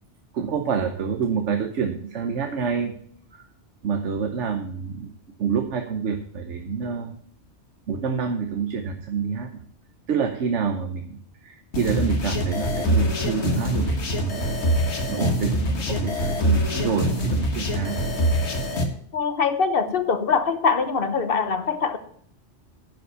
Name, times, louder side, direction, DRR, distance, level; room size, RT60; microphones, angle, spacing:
voice 1, 0.3-2.9 3.3-3.4 3.8-5.1 5.4-7.1 7.9-9.6 10.1-14.4 15.1-18.0, right 6 dB, 75° right, 1.2 m, -27 dB
sound 1, 11.7-18.8, equal, 65° left, 1.8 m, -24 dB
voice 2, 19.1-22.0, left 5 dB, 50° left, 1.2 m, -23 dB
10.5 x 5.2 x 7.9 m
omnidirectional pair, 1.2 m